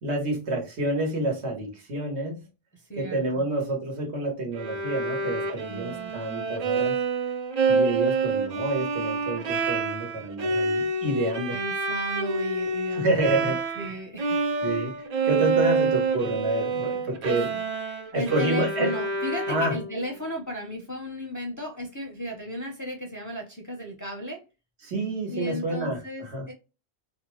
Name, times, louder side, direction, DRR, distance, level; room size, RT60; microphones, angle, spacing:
voice 1, 0.0-2.4 3.0-7.0 7.7-11.6 13.0-13.8 14.6-15.0 15.2-17.5 18.1-18.9 19.5-19.7 24.8-26.4, right 2 dB, 85° right, 1.4 m, -28 dB
voice 2, 2.7-3.5 5.7-6.1 11.5-14.4 15.6-15.7 17.5-17.7 18.1-24.4 25.3-26.5, equal, 25° left, 0.5 m, -35 dB
Bowed string instrument, 4.6-13.9 14.2-20.0, right 3 dB, 55° right, 0.4 m, -27 dB
2.7 x 2.1 x 3.0 m
omnidirectional pair, 1.1 m